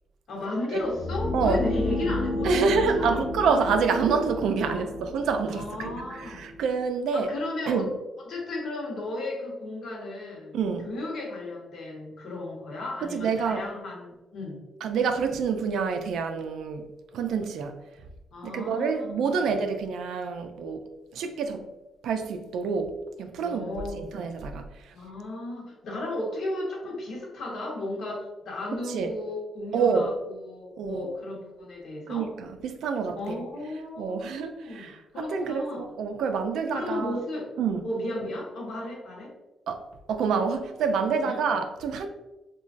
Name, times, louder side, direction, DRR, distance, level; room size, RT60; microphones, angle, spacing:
voice 1, 0.3-3.2 4.6-4.9 5.5-6.5 7.1-7.9 8.2-10.6 10.8-14.6 18.3-19.4 23.4-24.2 24.9-32.3 33.1-34.9 35.1-35.8 36.7-37.5 37.8-39.3 41.2-41.4, left 1 dB, 65° left, -2 dB, 0.9 m, -34 dB
sound 1, 0.8-6.7, left 2 dB, ahead, 0.4 m, -32 dB
voice 2, 1.3-1.6 2.4-7.3 7.7-7.9 10.5-10.9 13.0-13.7 14.8-16.9 17.1-17.8 18.4-21.7 22.0-24.9 28.9-29.1 29.7-30.1 30.8-31.1 32.1-33.5 34.0-37.2 37.6-37.8 39.7-39.8 40.1-42.1, right 5 dB, 80° right, 6 dB, 0.3 m, -27 dB
3.2 x 2.2 x 2.4 m, 1.0 s
cardioid pair, 130°, 0 cm